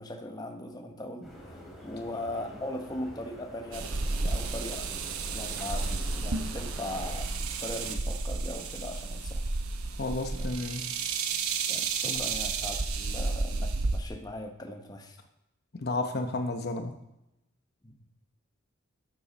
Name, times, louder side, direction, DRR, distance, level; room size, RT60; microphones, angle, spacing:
voice 1, 0.0-4.8 5.3-7.3 7.6-9.4 10.3-10.5 11.7-15.2 17.8-17.9, left 1 dB, 20° left, 3 dB, 1.1 m, -39 dB
sound 1, 1.2-7.1, equal, ahead, 2.8 m, -47 dB
sound 2, 3.7-14.0, right 4 dB, 85° right, 1.0 m, -32 dB
voice 2, 10.0-11.0 12.0-12.2 15.7-16.9, left 2 dB, 50° left, 5 dB, 0.9 m, -32 dB
12.5 x 7.0 x 5.3 m, 0.87 s
head